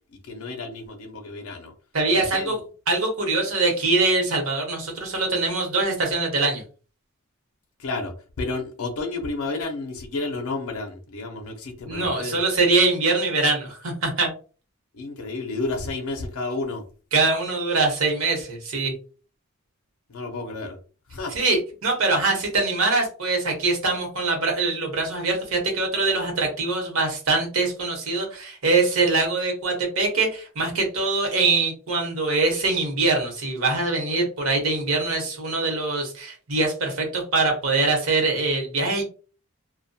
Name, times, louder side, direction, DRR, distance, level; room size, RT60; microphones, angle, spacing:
voice 1, 0.3-1.7 2.2-2.5 7.8-12.4 15.0-16.8 20.1-20.8 21.1-21.3, left 3 dB, 75° left, 4 dB, 0.5 m, -31 dB
voice 2, 1.9-2.6 2.9-6.6 11.8-14.3 17.1-18.9 21.3-39.0, right 3 dB, 70° right, 2 dB, 0.9 m, -23 dB
2.2 x 2.1 x 2.6 m, 0.37 s
head